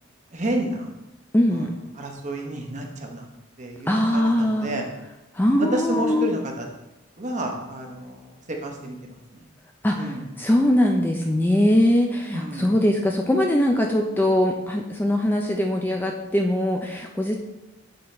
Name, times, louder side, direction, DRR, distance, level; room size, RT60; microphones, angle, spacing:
voice 1, 0.3-1.0 1.5-1.7 2.0-3.3 3.6-4.9 5.6-6.7 7.2-9.5 9.9-10.2 12.3-12.7, right 1 dB, 35° right, 1 dB, 0.9 m, -30 dB
voice 2, 1.3-1.7 3.9-4.7 5.3-6.3 9.8-17.4, left 1 dB, 10° left, 2 dB, 0.4 m, -21 dB
7.7 x 3.9 x 4.1 m, 0.97 s
head